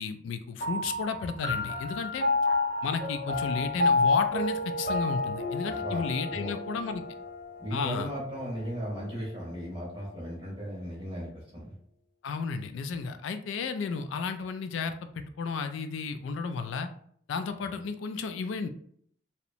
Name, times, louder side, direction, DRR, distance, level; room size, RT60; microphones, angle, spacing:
voice 1, 0.0-2.2 2.8-7.0 7.7-8.1 12.2-14.9 15.4-16.9 17.3-18.7, left 5 dB, 80° left, 8 dB, 0.3 m, -33 dB
sound 1, 0.6-9.4, left 3 dB, 40° left, 0.7 m, -30 dB
voice 2, 7.6-11.7, equal, 25° right, -5 dB, 0.7 m, -36 dB
2.8 x 2.0 x 2.5 m, 0.63 s
head